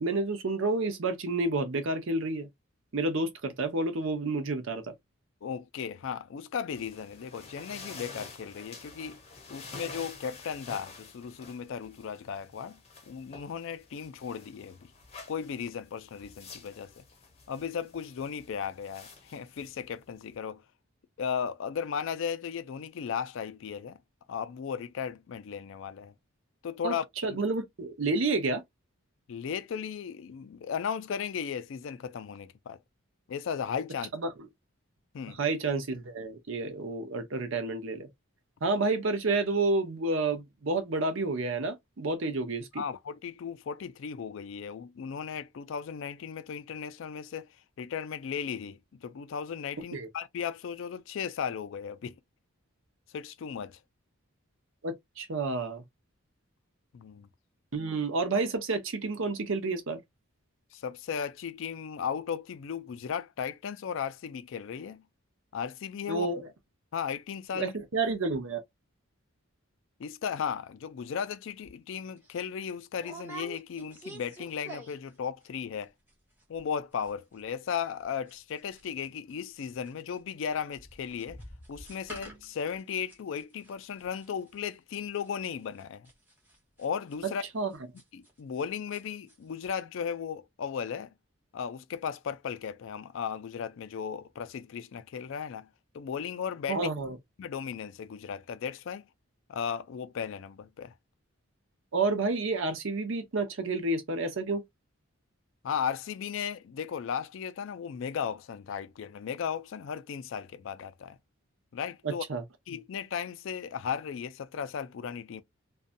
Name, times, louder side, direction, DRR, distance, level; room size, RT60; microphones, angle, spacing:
voice 1, 0.0-2.5 2.9-4.9 26.8-26.9 27.2-28.6 34.1-34.3 35.4-38.1 38.6-42.8 49.9-50.1 54.8-55.8 57.7-60.0 66.1-66.5 67.5-68.6 87.5-87.7 96.7-97.2 101.9-104.6 112.0-112.4, right 3 dB, 65° right, 0.6 m, -30 dB
voice 2, 5.4-9.2 9.5-12.8 13.1-14.8 15.3-17.0 17.5-20.6 21.2-24.0 24.3-26.1 26.6-27.4 29.3-32.8 33.3-34.1 35.1-35.4 42.8-47.5 47.8-52.1 53.1-53.8 56.9-57.3 60.7-65.0 65.5-66.3 66.9-67.7 70.0-75.9 76.5-81.4 81.7-86.1 86.8-87.4 88.1-91.1 91.5-95.7 95.9-96.8 97.4-99.1 99.5-100.9 105.6-111.2 111.7-112.2 112.7-115.4, left 7 dB, 65° left, 0.3 m, -36 dB
sound 1, 6.7-20.4, left 4 dB, 30° left, 0.7 m, -49 dB
sound 2, 71.6-71.8 72.2-72.3 73.0-75.2 75.4-75.8 76.1-76.2 76.4-76.8 77.0-79.3 79.6-88.6 88.9-89.4 89.6-89.7, right 2 dB, 10° right, 0.9 m, -48 dB
2.6 x 2.2 x 2.5 m
head